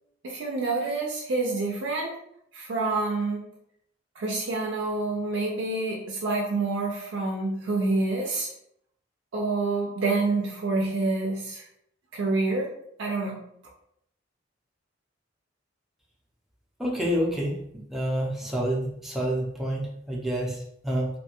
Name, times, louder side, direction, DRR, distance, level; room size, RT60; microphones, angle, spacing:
voice 1, 0.2-2.2 2.5-3.4 4.2-8.5 9.3-11.6 12.1-12.7 13.0-13.4, right 3 dB, 70° right, -1 dB, 0.4 m, -27 dB
voice 2, 16.8-17.6 17.9-21.1, equal, ahead, -3 dB, 0.5 m, -28 dB
2.6 x 2.2 x 2.8 m, 0.72 s
head